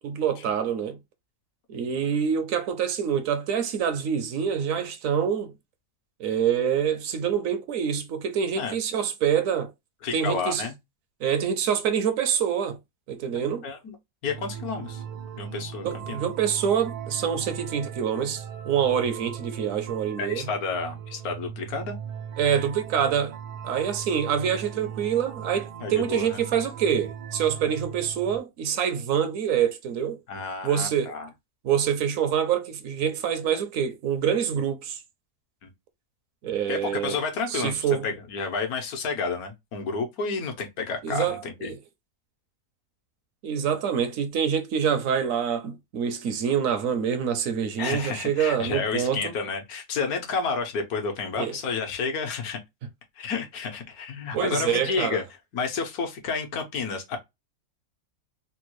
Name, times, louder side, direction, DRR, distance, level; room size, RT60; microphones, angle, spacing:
voice 1, 0.0-1.0 1.7-5.5 6.2-9.7 10.1-10.7 11.2-12.8 13.1-13.7 15.8-20.5 22.4-23.4 23.6-30.2 30.6-31.1 31.6-35.0 36.4-37.2 37.5-38.1 41.0-41.8 43.4-49.3 51.4-51.6 54.3-55.2, right 8 dB, 70° right, 0.9 m, -26 dB
voice 2, 10.0-10.7 13.6-13.8 14.2-15.0 15.4-16.2 20.2-22.0 25.8-26.4 30.3-31.3 35.6-35.7 36.7-41.7 47.8-52.6 53.2-55.2 55.5-57.2, left 4 dB, 80° left, 1.3 m, -30 dB
sound 1, 14.3-28.4, right 8 dB, 85° right, 1.3 m, -38 dB
3.4 x 2.2 x 3.0 m
omnidirectional pair, 1.6 m